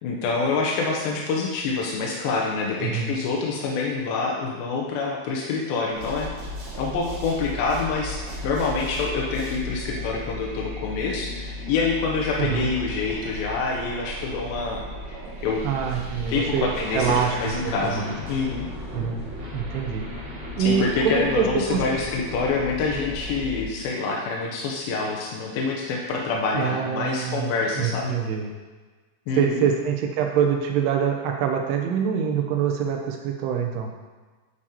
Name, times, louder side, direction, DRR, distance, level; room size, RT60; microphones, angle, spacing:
voice 1, 0.0-6.3 6.7-14.8 15.1-15.6 16.3-18.7 20.6-28.1 29.3-29.7, left 4 dB, 80° left, -2 dB, 2.2 m, -26 dB
voice 2, 2.8-3.1 12.4-12.7 15.6-18.2 18.9-19.2 19.5-20.3 20.6-21.8 26.5-28.5 29.4-33.9, right 7 dB, 85° right, 2 dB, 2.7 m, -25 dB
sound 1, 5.9-23.6, left 1 dB, 50° right, 2.7 m, -35 dB
9.6 x 5.1 x 2.8 m, 1.3 s
omnidirectional pair, 4.8 m